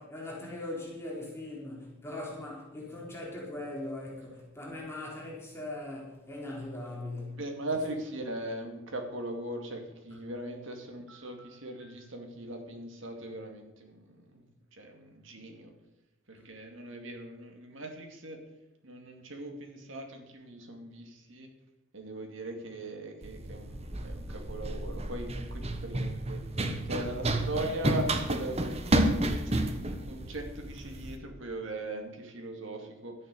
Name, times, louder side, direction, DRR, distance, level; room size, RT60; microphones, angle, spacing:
voice 1, 0.0-7.4, left 2 dB, 10° left, 3.6 m, -40 dB
voice 2, 7.3-14.4 14.7-15.7 16.3-18.4 18.8-21.5 21.9-26.4 26.9-29.1 29.8-33.1, right 1 dB, 65° right, 2.4 m, -39 dB
Run, 23.2-31.2, right 1 dB, 30° right, 1.1 m, -31 dB
12.5 x 9.9 x 6.8 m
head